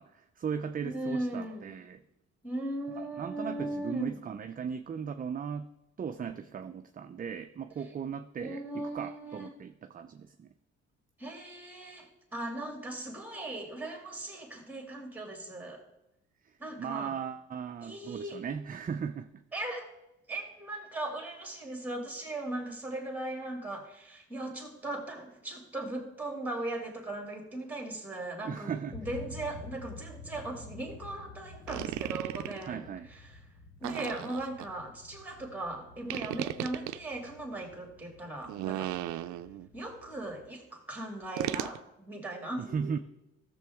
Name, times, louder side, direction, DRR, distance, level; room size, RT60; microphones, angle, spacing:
voice 1, 0.0-2.0 3.0-5.7 6.0-10.5 16.4-19.4 28.4-29.0 32.6-33.1 42.6-43.0, right 7 dB, 30° right, 8 dB, 0.5 m, -37 dB
voice 2, 0.8-1.7 2.4-4.2 8.4-9.5 11.2-15.8 16.6-17.2 17.8-18.4 19.5-19.9 20.3-32.8 33.1-33.2 33.8-38.9 39.7-43.0, right 1 dB, 5° right, 2 dB, 2.3 m, -38 dB
sound 1, 28.9-40.5, left 2 dB, 80° left, 1.2 m, -50 dB
sound 2, 31.7-32.7 33.8-34.7 36.1-37.0 38.4-39.7 41.4-41.8, right 14 dB, 85° right, 0.5 m, -35 dB
13.5 x 7.0 x 3.5 m, 0.89 s
cardioid pair, 85°, 29 cm